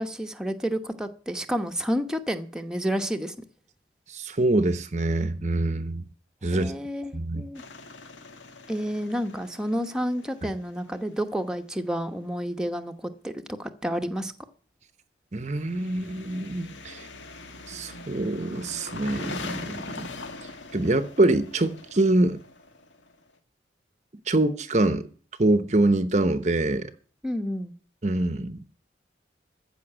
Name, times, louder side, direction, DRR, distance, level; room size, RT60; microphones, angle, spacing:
voice 1, 0.0-3.4 6.4-7.6 8.7-14.3 27.2-27.7, equal, 5° right, 1.0 m, -30 dB
voice 2, 4.1-6.0 6.4-6.7 7.1-7.4 15.3-17.1 17.7-20.1 20.7-22.4 24.3-25.1 25.4-26.9 28.0-28.6, right 2 dB, 40° right, 0.8 m, -25 dB
sound 1, 7.5-11.4 15.5-23.2, left 3 dB, 90° left, 1.9 m, -42 dB
14.5 x 5.8 x 9.0 m
head